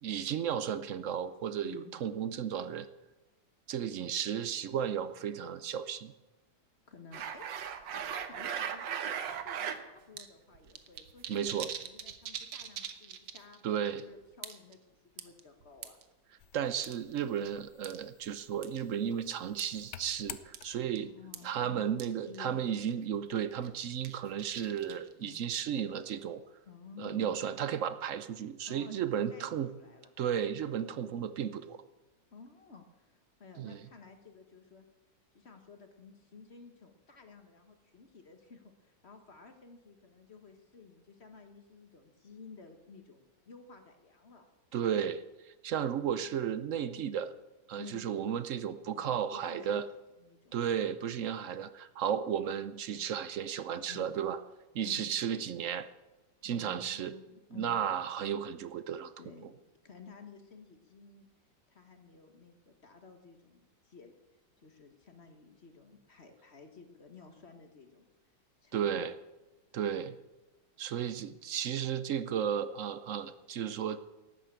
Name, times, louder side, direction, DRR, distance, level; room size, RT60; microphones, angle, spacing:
voice 1, 0.0-2.9 3.7-6.1 11.3-11.7 13.6-14.0 16.5-21.1 21.4-26.4 27.0-29.7 30.2-31.8 33.6-33.8 44.7-47.3 47.7-49.9 50.5-54.4 54.7-55.9 56.4-57.1 57.5-59.1 59.4-59.5 68.7-69.1 69.7-70.2 70.8-74.0, right 8 dB, 65° right, 13 dB, 0.8 m, -34 dB
voice 2, 6.9-16.0 20.8-21.8 22.3-22.6 25.2-25.4 26.6-27.3 28.7-29.5 29.7-30.1 30.9-31.3 32.3-34.8 35.3-44.4 47.7-48.0 48.9-49.8 50.2-50.6 52.9-53.2 53.9-54.2 54.8-55.1 56.4-57.8 59.2-59.5 59.8-61.3 61.7-64.1 64.6-68.1 68.6-69.1, left 5 dB, 40° left, 6 dB, 1.5 m, -54 dB
sound 1, 7.1-9.8 10.2-10.3 10.5-13.6 13.9-14.0 14.4-14.7 15.2-16.0 16.8-17.5 17.8-18.0 18.6-18.8 19.6-19.7 20.1-20.2 20.5-20.7 21.0-21.1 21.3-21.4 22.0-22.1 22.3-22.4 22.8-23.0 23.5-25.1, right 8 dB, 90° right, 1.6 m, -39 dB
sound 2, 16.4-21.1, left 11 dB, 65° left, 1.1 m, -51 dB
12.5 x 9.4 x 8.8 m, 1.1 s
omnidirectional pair, 1.9 m